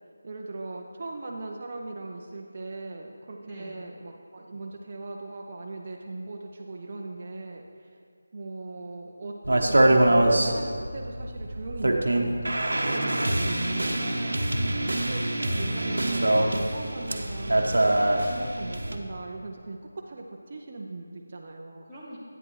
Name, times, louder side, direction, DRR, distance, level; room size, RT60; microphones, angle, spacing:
voice 1, 0.2-7.9 8.3-14.0 14.8-21.8, right 2 dB, 40° right, 0 dB, 0.5 m, -39 dB
voice 2, 3.4-3.8 13.7-15.1 21.9-22.2, right 1 dB, ahead, -17 dB, 0.8 m, -44 dB
sound 1, 9.4-19.0, right 1 dB, 90° right, 0.8 m, -24 dB
8.8 x 8.5 x 3.1 m, 2.2 s
figure-of-eight pair, 170°, 0 cm